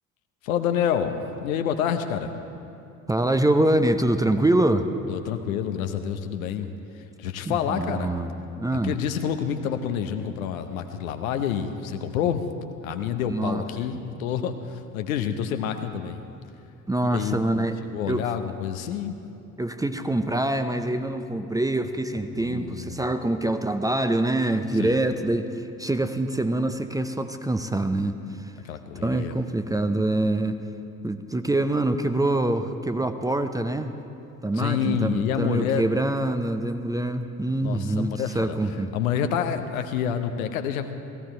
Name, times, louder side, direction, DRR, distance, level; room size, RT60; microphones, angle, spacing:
voice 1, 0.4-2.3 5.1-6.7 6.9-8.1 8.8-12.4 12.8-16.3 17.0-19.2 22.3-23.1 24.8-25.0 28.6-29.4 34.6-35.9 37.6-38.6 38.9-40.9, left 8 dB, 70° left, 8 dB, 0.9 m, -28 dB
voice 2, 3.1-4.9 7.4-8.3 8.6-9.0 13.3-13.6 16.9-17.8 18.1-18.3 19.6-28.5 29.0-30.6 31.0-33.9 34.4-38.9, right 1 dB, 10° right, 8 dB, 0.7 m, -25 dB
16.0 x 16.0 x 4.4 m, 2.8 s
figure-of-eight pair, 55°, 44 cm